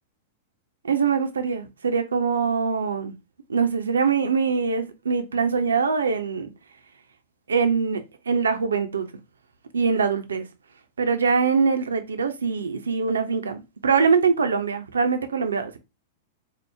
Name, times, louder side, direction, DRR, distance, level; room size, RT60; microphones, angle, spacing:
voice 1, 0.8-3.1 3.5-6.5 7.5-9.1 9.7-10.5 11.0-15.8, right 5 dB, 75° right, 0.5 m, -23 dB
4.5 x 2.1 x 3.2 m
figure-of-eight pair, 95°, 0 cm